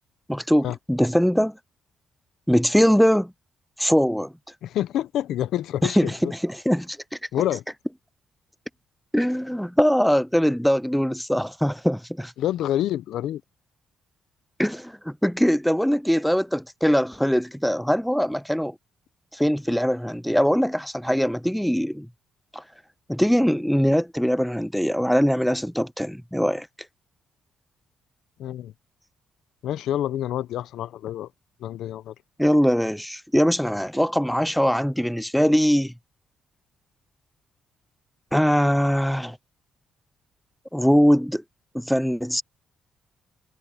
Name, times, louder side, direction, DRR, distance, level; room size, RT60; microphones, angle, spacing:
voice 1, 0.3-1.6 2.5-3.3 3.8-4.3 5.8-7.0 9.1-12.3 14.6-18.8 19.3-22.1 22.5-22.6 23.1-26.7 32.4-35.9 38.3-39.4 40.7-41.4 41.7-42.4, equal, ahead, 0.3 m, -22 dB
voice 2, 4.6-6.3 7.3-7.6 12.4-13.4 28.4-28.7 29.6-31.3 31.6-32.1, left 12 dB, 80° left, 0.8 m, -27 dB
cardioid pair, 90°, 0 cm